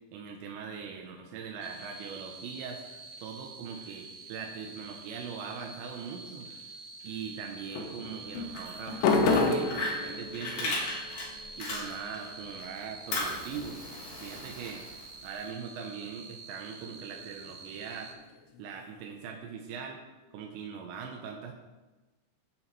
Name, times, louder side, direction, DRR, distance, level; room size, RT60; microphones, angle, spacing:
voice 1, 0.1-2.8 3.2-6.5 7.0-10.8 11.6-13.8 14.2-14.9 15.2-18.2 18.6-20.0 20.3-21.5, right 6 dB, 80° right, 1 dB, 3.0 m, -41 dB
sound 1, 0.7-2.6 6.1-6.7 7.8-14.5 16.3-19.3, left 3 dB, 90° left, 3.6 m, -34 dB
sound 2, 1.6-18.1, right 3 dB, 60° right, 2.8 m, -47 dB
Fire, 8.4-12.3 12.6-15.4, left 2 dB, 50° left, 3.9 m, -37 dB
15.0 x 6.2 x 4.7 m, 1.1 s
omnidirectional pair, 5.3 m